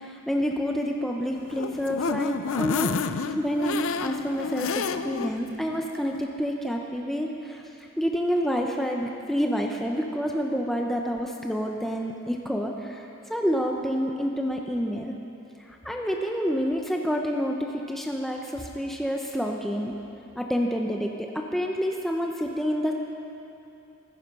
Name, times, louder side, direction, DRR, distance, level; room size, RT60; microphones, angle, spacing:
voice 1, 0.0-3.0 3.2-15.1 15.7-20.0 20.4-22.9, equal, ahead, 0 dB, 0.7 m, -28 dB
sound 1, 1.3-5.3 5.7-5.8 6.1-6.2, left 5 dB, 75° left, 0.5 m, -30 dB
14.5 x 14.5 x 5.4 m, 2.8 s
head